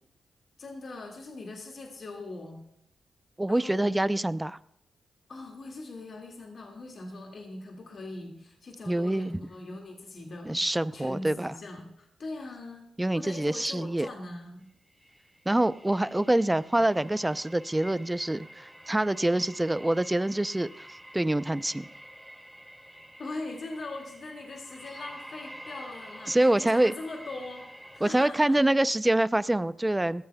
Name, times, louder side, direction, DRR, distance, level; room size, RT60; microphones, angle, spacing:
voice 1, 0.6-2.6 3.5-4.0 5.3-12.9 13.1-14.7 23.2-28.6, left 2 dB, 60° left, 2.2 m, -41 dB
voice 2, 3.4-4.6 8.9-9.3 10.5-11.5 13.0-14.1 15.5-20.9 21.1-21.9 26.3-26.9 28.0-30.2, right 1 dB, 15° right, 0.6 m, -25 dB
sound 1, 14.9-28.0, equal, ahead, 3.3 m, -48 dB
21.0 x 14.5 x 2.3 m
supercardioid pair, 50°, 0 cm